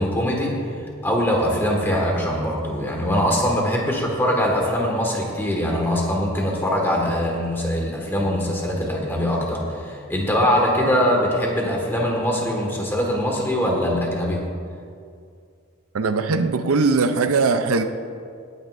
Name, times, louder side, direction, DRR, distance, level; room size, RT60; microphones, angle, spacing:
voice 1, 0.0-14.4, equal, 10° left, -1 dB, 1.7 m, -22 dB
voice 2, 15.9-17.8, right 4 dB, 90° right, 8 dB, 0.6 m, -20 dB
18.5 x 9.4 x 2.6 m, 2.3 s
head